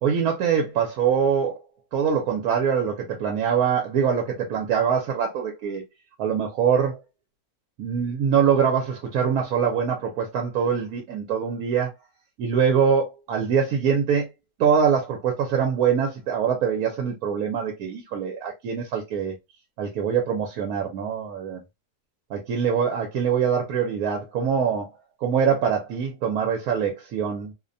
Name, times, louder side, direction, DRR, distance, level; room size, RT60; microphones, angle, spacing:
voice 1, 0.0-1.6 1.9-5.8 6.2-7.0 7.8-11.9 12.4-14.3 14.6-19.3 19.8-21.6 22.3-24.9 25.2-27.5, right 7 dB, 75° right, 1.0 m, -23 dB
2.7 x 2.1 x 2.5 m
omnidirectional pair, 1.6 m